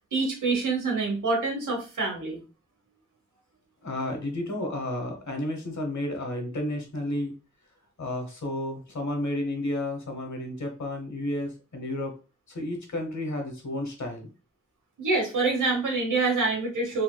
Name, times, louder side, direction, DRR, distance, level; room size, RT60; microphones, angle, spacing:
voice 1, 0.1-2.4 15.0-17.0, right 3 dB, 85° right, 0 dB, 1.1 m, -26 dB
voice 2, 3.8-7.3 8.0-12.1 12.5-14.3, left 1 dB, 70° left, 3 dB, 1.0 m, -32 dB
3.1 x 2.8 x 2.2 m, 0.33 s
cardioid pair, 40°, 30 cm